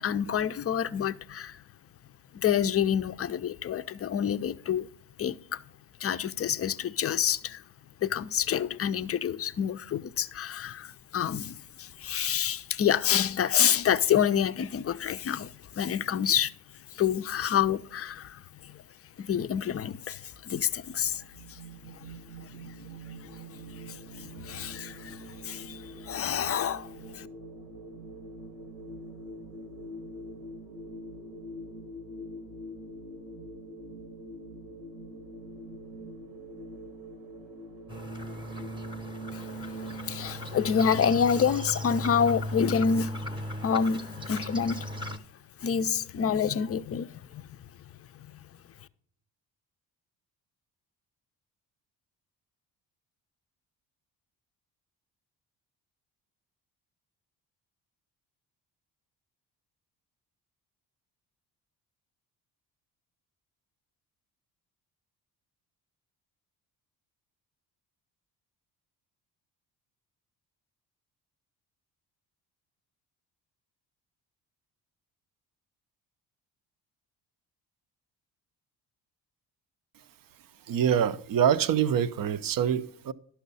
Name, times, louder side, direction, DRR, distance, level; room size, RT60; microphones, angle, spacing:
voice 1, 0.0-1.6 2.3-4.9 5.2-5.6 6.0-7.6 8.0-16.5 16.9-18.8 19.2-21.6 21.9-22.1 22.4-22.7 23.1-27.3 39.3-44.9 45.6-47.6 48.1-48.5, left 8 dB, 30° left, 0.5 m, -28 dB
sound 1, 20.3-40.0, right 1 dB, 90° right, 1.3 m, -45 dB
sound 2, 37.9-45.2, equal, 10° right, 0.9 m, -37 dB
voice 2, 80.7-83.1, right 8 dB, 45° right, 0.6 m, -25 dB
11.5 x 5.7 x 4.1 m
hypercardioid pair, 55°, 48 cm